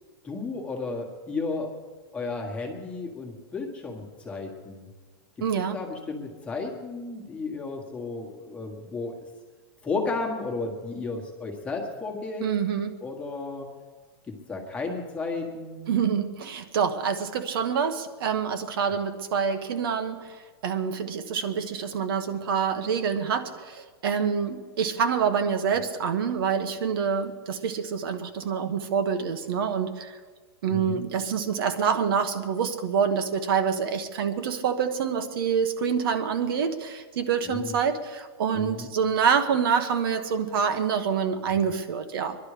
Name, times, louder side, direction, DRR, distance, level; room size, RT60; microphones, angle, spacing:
voice 1, 0.2-1.7 2.1-4.9 5.7-9.2 9.8-12.4 13.0-13.7 14.5-16.0 30.7-31.0 37.4-37.7 38.5-38.9, left 3 dB, 10° left, 1 dB, 1.6 m, -33 dB
voice 2, 5.4-5.8 12.4-12.9 15.9-20.3 20.6-30.2 30.6-42.4, right 7 dB, 55° right, 7 dB, 1.2 m, -26 dB
22.5 x 11.5 x 5.0 m, 1.4 s
supercardioid pair, 170°, 14 cm